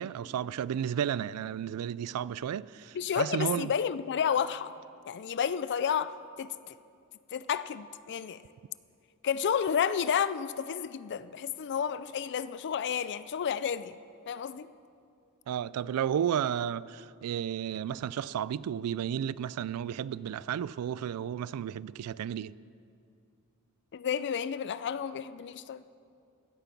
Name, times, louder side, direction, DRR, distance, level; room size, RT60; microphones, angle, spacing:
voice 1, 0.0-3.7 15.5-22.5, right 9 dB, 80° right, 0.3 m, -33 dB
voice 2, 2.9-4.7 5.0-6.7 7.3-8.4 9.2-14.0 14.3-14.7 23.9-25.8, left 7 dB, 50° left, 0.4 m, -31 dB
16.0 x 9.0 x 5.9 m
head